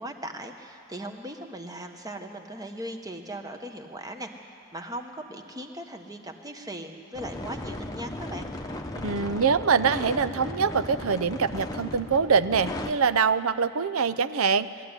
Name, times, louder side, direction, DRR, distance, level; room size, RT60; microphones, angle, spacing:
voice 1, 0.0-8.5, right 1 dB, 15° right, 5 dB, 1.2 m, -39 dB
sound 1, 7.1-12.9, left 1 dB, 15° left, 1.0 m, -36 dB
voice 2, 9.0-14.7, right 5 dB, 75° right, 14 dB, 0.6 m, -24 dB
20.5 x 13.5 x 9.8 m, 2.6 s
head